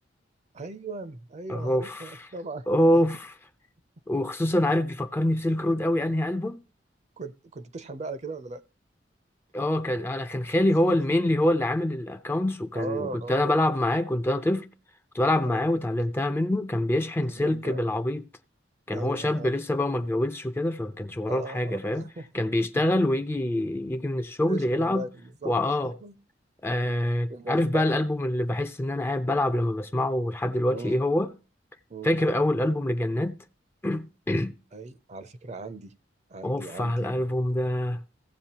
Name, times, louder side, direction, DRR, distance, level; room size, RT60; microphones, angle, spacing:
voice 1, 0.5-3.0 7.2-8.6 10.7-10.8 12.7-13.5 15.4-15.7 17.2-17.9 18.9-19.6 21.3-22.3 22.7-22.8 24.4-25.6 25.8-26.2 27.3-27.9 30.7-31.0 31.9-32.1 34.7-35.9 36.3-37.4, right 3 dB, 40° right, 0.5 m, -38 dB
voice 2, 1.5-2.2 2.7-3.3 4.1-6.6 9.5-14.7 15.1-18.2 18.9-22.1 22.3-25.1 25.4-25.9 26.6-31.3 32.0-33.4 33.8-34.5 36.4-38.0, left 1 dB, 15° left, 0.4 m, -25 dB
16.0 x 7.4 x 2.9 m
head